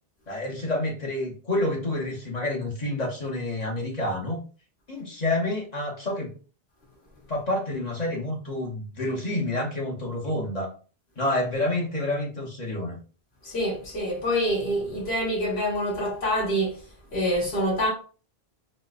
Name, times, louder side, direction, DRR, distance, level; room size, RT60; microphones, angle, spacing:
voice 1, 0.3-4.4 4.9-6.3 7.3-10.7 11.2-13.0, left 1 dB, 45° left, 1.0 m, -28 dB
voice 2, 13.4-16.8 17.1-17.9, equal, 80° left, 1.5 m, -26 dB
4.2 x 2.2 x 2.4 m
omnidirectional pair, 1.1 m